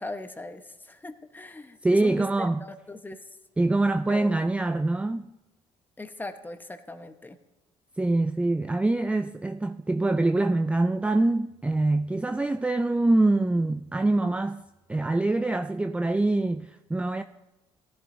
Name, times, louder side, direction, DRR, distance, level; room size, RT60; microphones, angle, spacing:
voice 1, 0.0-3.3 4.1-4.4 6.0-7.4, left 2 dB, 15° left, 1.0 m, -39 dB
voice 2, 1.8-2.6 3.6-5.3 8.0-14.6 14.9-17.2, right 2 dB, 10° right, 0.4 m, -24 dB
16.5 x 11.0 x 2.7 m
supercardioid pair, 75°, 13 cm